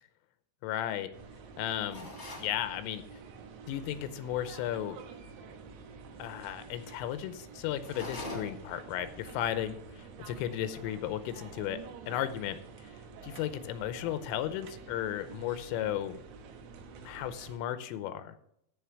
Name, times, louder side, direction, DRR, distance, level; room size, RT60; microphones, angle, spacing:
voice 1, 0.6-1.1 1.6-2.1 2.4-3.0 3.7-5.0 6.2-11.8 12.1-12.6 13.2-16.2 17.0-18.3, left 11 dB, 90° left, 11 dB, 3.3 m, -35 dB
sound 1, 1.1-17.6, right 5 dB, 85° right, 3.7 m, -49 dB
sound 2, 1.9-2.5 7.8-8.7, left 2 dB, 25° left, 1.4 m, -41 dB
13.5 x 5.1 x 5.9 m, 0.74 s
omnidirectional pair, 5.7 m